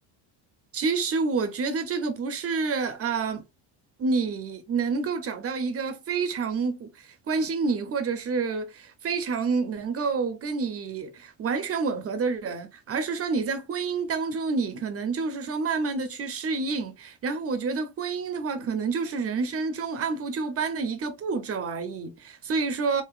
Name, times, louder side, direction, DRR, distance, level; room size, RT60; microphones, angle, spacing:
voice 1, 0.7-3.5 4.0-23.0, right 4 dB, 30° right, 0.6 m, -28 dB
3.9 x 2.5 x 2.3 m
cardioid pair, 125°, 50 cm